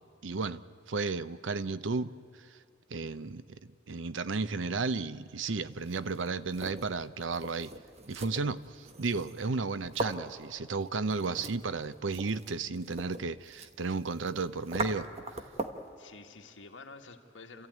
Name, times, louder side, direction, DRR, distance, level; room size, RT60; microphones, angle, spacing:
voice 1, 0.2-0.6 0.9-2.1 2.9-7.7 8.1-15.1, right 4 dB, 90° right, 0.7 m, -33 dB
sound 1, 5.7-15.9, right 2 dB, 35° right, 1.2 m, -41 dB
voice 2, 9.4-9.7 16.0-17.7, left 3 dB, 80° left, 1.8 m, -50 dB
29.0 x 14.0 x 9.3 m
head